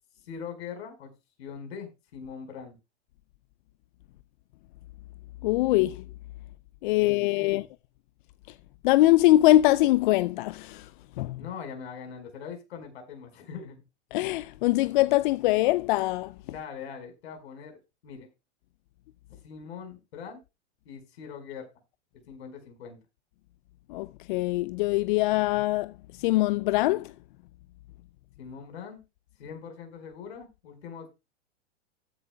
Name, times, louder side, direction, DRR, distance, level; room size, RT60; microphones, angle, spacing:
voice 1, 0.2-1.1 1.4-2.8 6.9-7.6 11.4-13.8 16.4-18.3 19.4-20.4 20.8-21.7 22.3-23.0 28.4-29.0 29.4-31.1, left 6 dB, 70° left, 4.8 m, -42 dB
voice 2, 5.4-6.0 6.8-7.6 8.8-10.8 11.2-11.4 14.1-16.3 23.9-25.9 26.2-27.1, left 17 dB, 50° left, 0.4 m, -23 dB
15.0 x 10.5 x 2.2 m
hypercardioid pair, 105°, 34 cm